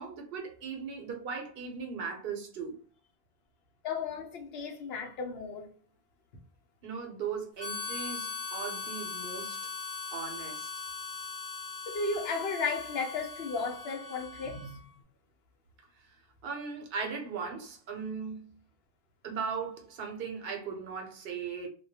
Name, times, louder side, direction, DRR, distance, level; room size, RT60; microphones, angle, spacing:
voice 1, 0.0-2.8 6.8-9.6 10.1-10.7 16.4-18.6 19.2-21.7, right 5 dB, 70° right, 0.8 m, -38 dB
voice 2, 3.8-5.7 11.9-14.8, left 4 dB, 75° left, 0.8 m, -34 dB
Harmonica, 7.6-14.9, left 4 dB, 35° left, 0.7 m, -40 dB
2.2 x 2.1 x 2.7 m
omnidirectional pair, 1.1 m